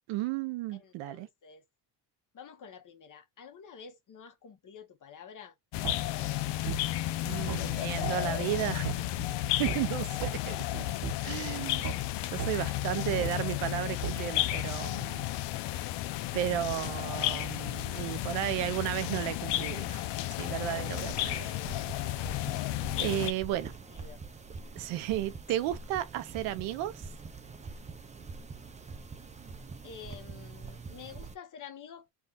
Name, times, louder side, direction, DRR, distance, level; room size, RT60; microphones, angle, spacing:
voice 1, 0.1-1.3 7.2-9.3 9.6-10.8 11.2-12.0 12.3-15.3 16.3-20.1 20.4-21.5 23.0-23.7 24.8-27.1, right 13 dB, 90° right, 0.8 m, -34 dB
voice 2, 0.7-1.6 2.3-5.5 23.5-23.7 24.0-24.2 29.8-32.1, left 7 dB, 45° left, 1.1 m, -49 dB
sound 1, 5.7-23.3, left 14 dB, 65° left, 0.6 m, -33 dB
sound 2, 5.8-6.0 6.7-6.8 7.5-7.6 8.0-8.2 8.8-9.0 9.7-9.8 10.2-10.4 11.0-11.2 11.8-12.0 12.4-12.5 13.2-13.3 14.0-14.2, right 10 dB, 45° right, 0.9 m, -35 dB
sound 3, 20.9-31.3, right 4 dB, 15° right, 0.5 m, -45 dB
3.6 x 2.4 x 4.0 m
cardioid pair, 105°, 45 cm